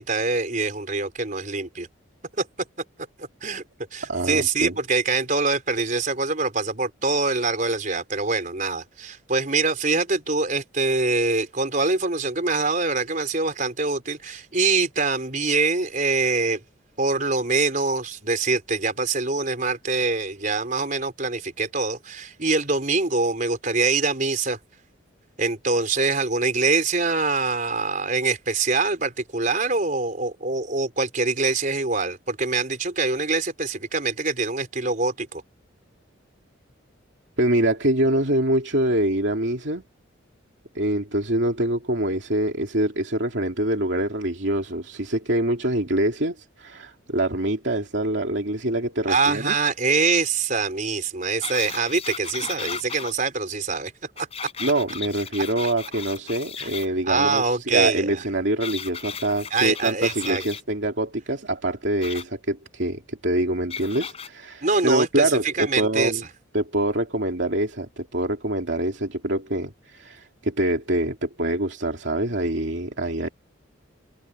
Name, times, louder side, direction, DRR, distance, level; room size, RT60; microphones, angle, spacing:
voice 1, 0.0-1.9 2.4-2.5 3.2-3.6 3.9-16.6 17.0-24.6 25.4-35.4 49.1-53.9 54.2-54.3 56.6-56.7 57.1-58.2 59.5-60.4 64.6-66.1, right 3 dB, 40° right, 4.3 m, -24 dB
voice 2, 4.1-4.7 37.4-39.8 40.7-49.5 54.6-66.2 66.5-73.3, right 1 dB, 60° right, 2.7 m, -25 dB
sound 1, 51.4-53.1 54.2-56.9 58.6-60.6 62.0-62.2 63.7-64.3 65.0-65.1, left 6 dB, 30° left, 6.3 m, -35 dB
head